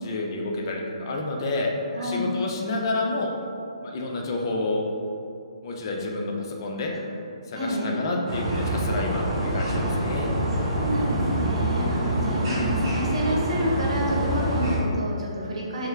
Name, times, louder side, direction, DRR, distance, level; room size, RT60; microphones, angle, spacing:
voice 1, 0.0-1.7 2.0-3.3 3.8-4.8 5.6-6.9 7.5-10.3, left 2 dB, 45° left, 1 dB, 0.5 m, -29 dB
voice 2, 1.9-2.3 6.9-7.0 7.5-8.0 9.6-10.0 10.5-15.9, equal, 70° right, -3 dB, 1.0 m, -29 dB
sound 1, 8.3-14.8, right 1 dB, 45° right, 1.2 m, -26 dB
3.5 x 3.2 x 3.4 m, 2.5 s
hypercardioid pair, 155°, 3 cm